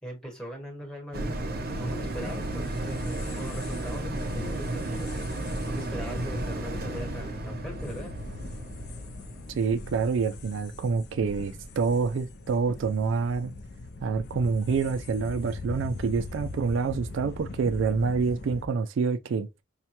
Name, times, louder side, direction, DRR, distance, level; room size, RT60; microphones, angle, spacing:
voice 1, 0.0-5.1 5.7-8.1, equal, 5° left, 1.1 m, -40 dB
sound 1, 1.1-11.8 12.2-12.3, right 2 dB, 45° right, 0.7 m, -34 dB
sound 2, 1.4-18.7, left 2 dB, 50° left, 0.4 m, -41 dB
voice 2, 9.5-13.5 14.0-19.5, right 5 dB, 70° right, 0.3 m, -27 dB
5.4 x 2.1 x 2.9 m
head